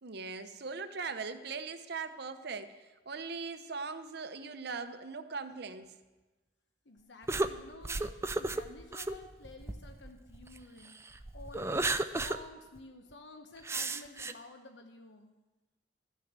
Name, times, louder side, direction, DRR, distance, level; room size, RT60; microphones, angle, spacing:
voice 1, 0.0-5.9, right 4 dB, 60° right, 9 dB, 0.8 m, -40 dB
voice 2, 6.8-15.3, left 2 dB, 70° left, 5 dB, 0.9 m, -52 dB
sound 1, 7.3-10.6 11.1-12.4 12.8-12.9 13.6-14.3, right 2 dB, 15° right, 0.4 m, -33 dB
13.0 x 6.5 x 8.1 m, 1.2 s
head